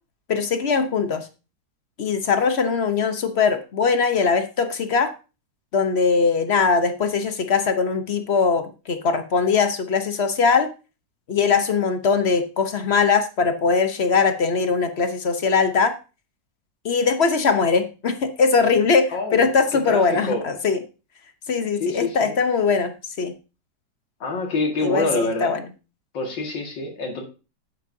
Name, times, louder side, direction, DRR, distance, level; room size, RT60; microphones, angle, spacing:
voice 1, 0.3-1.3 2.0-5.1 5.7-10.7 11.3-15.9 16.8-20.8 21.5-23.3 24.8-25.6, left 5 dB, 45° left, 8 dB, 0.9 m, -21 dB
voice 2, 19.1-20.4 21.8-22.3 24.2-25.6 26.1-27.2, left 2 dB, 80° left, 1 dB, 2.7 m, -26 dB
11.0 x 8.3 x 2.7 m, 0.32 s
omnidirectional pair, 2.0 m